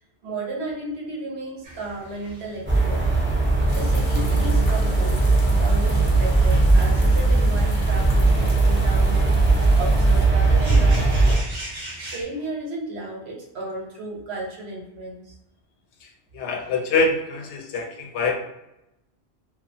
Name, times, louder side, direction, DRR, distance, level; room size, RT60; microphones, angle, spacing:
voice 1, 0.2-3.1 3.7-5.3 5.6-11.4 12.1-15.4 16.6-16.7 18.1-18.2, right 1 dB, 70° right, -1 dB, 1.0 m, -34 dB
sound 1, 1.6-12.2, right 2 dB, 50° right, 0.7 m, -42 dB
sound 2, 2.7-11.4, right 3 dB, 15° right, 0.4 m, -19 dB
sound 3, 3.7-10.3, left 1 dB, 40° left, 0.6 m, -34 dB
voice 2, 16.0-18.4, left 3 dB, 80° left, 3 dB, 0.8 m, -25 dB
2.7 x 2.3 x 2.6 m, 0.89 s
omnidirectional pair, 1.1 m